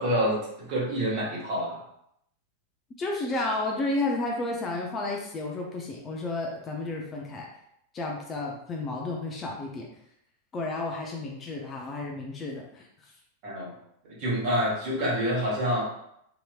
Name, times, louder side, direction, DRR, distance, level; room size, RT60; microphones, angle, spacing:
voice 1, 0.0-1.8 13.4-13.7 14.0-15.9, equal, 45° right, -4 dB, 1.1 m, -27 dB
voice 2, 3.0-7.5 7.9-9.9 10.5-12.8, left 2 dB, 25° left, -1 dB, 0.5 m, -32 dB
2.9 x 2.8 x 2.2 m, 0.75 s
figure-of-eight pair, 90°, 0 cm